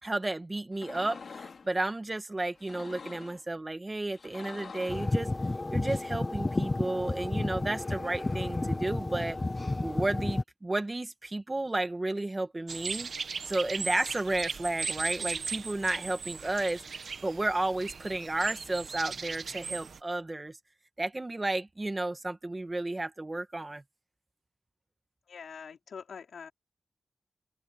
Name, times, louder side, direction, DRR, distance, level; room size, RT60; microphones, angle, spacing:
voice 1, 0.0-5.3 5.7-9.4 9.8-13.1 13.4-20.6 21.0-23.8, right 2 dB, 25° right, 2.0 m, -32 dB
sound 1, 0.7-1.7 2.5-3.4 4.1-5.1, left 5 dB, 65° left, 3.3 m, -45 dB
sound 2, 4.9-10.4, left 2 dB, 30° left, 0.7 m, -31 dB
sound 3, 12.7-20.0, right 5 dB, 70° right, 1.6 m, -38 dB
voice 2, 25.3-26.5, left 6 dB, 85° left, 4.8 m, -44 dB
open air
wide cardioid pair, 80°, 0 cm